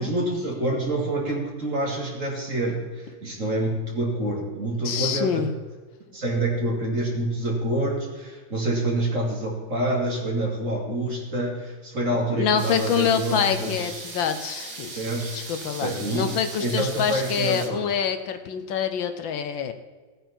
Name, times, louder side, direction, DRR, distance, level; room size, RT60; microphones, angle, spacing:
voice 1, 0.0-5.4 6.1-14.0 14.9-15.3 15.8-17.9, right 1 dB, 40° right, -2 dB, 3.0 m, -27 dB
voice 2, 4.8-5.5 12.3-15.1 15.3-19.7, left 7 dB, 75° left, 8 dB, 1.6 m, -26 dB
sound 1, 12.6-17.7, right 3 dB, 55° right, 2.2 m, -38 dB
17.0 x 9.1 x 4.4 m, 1.4 s
omnidirectional pair, 2.2 m